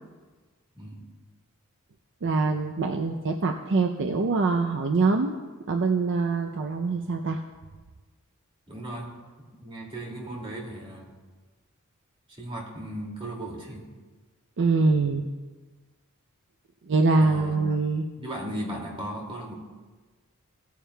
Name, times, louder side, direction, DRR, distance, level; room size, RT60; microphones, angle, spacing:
voice 1, 0.7-1.1 8.7-9.1 9.6-11.1 12.4-13.8 17.2-17.6 18.2-19.5, right 1 dB, 25° right, -2 dB, 2.3 m, -36 dB
voice 2, 2.2-5.3 5.7-7.4 14.6-15.3 16.8-18.1, right 3 dB, 55° right, 4 dB, 0.5 m, -24 dB
17.5 x 9.3 x 2.3 m, 1.3 s
head